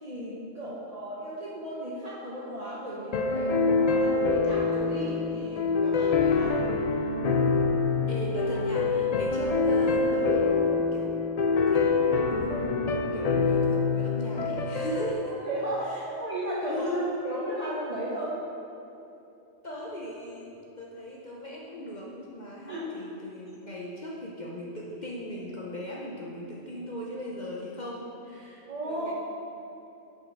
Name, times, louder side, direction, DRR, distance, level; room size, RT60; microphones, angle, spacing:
voice 1, 0.0-6.5 7.2-7.5 15.2-18.4 22.6-22.9 28.7-29.1, right 1 dB, 35° right, -7 dB, 0.9 m, -35 dB
sound 1, 3.1-15.1, left 4 dB, 85° left, 0.3 m, -25 dB
voice 2, 6.3-6.6 8.1-11.2 11.7-15.3 15.9-16.0 16.7-17.1 19.6-29.1, equal, 40° left, -3 dB, 0.8 m, -37 dB
7.2 x 5.4 x 5.2 m, 2.9 s
omnidirectional pair, 1.3 m